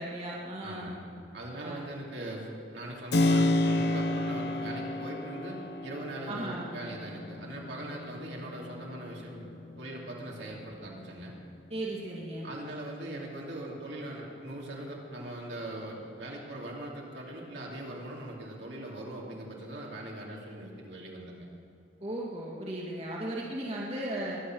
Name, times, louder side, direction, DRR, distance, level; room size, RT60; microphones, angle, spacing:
voice 1, 0.0-0.9 1.6-1.8 6.3-6.7 11.7-12.5 22.0-24.4, right 1 dB, 30° right, -4 dB, 2.1 m, -36 dB
voice 2, 0.6-11.3 12.4-21.5, right 1 dB, 70° right, -3 dB, 2.9 m, -41 dB
Keyboard (musical), 3.1-11.7, left 2 dB, 60° left, 0.9 m, -32 dB
22.5 x 8.7 x 6.2 m, 2.6 s
head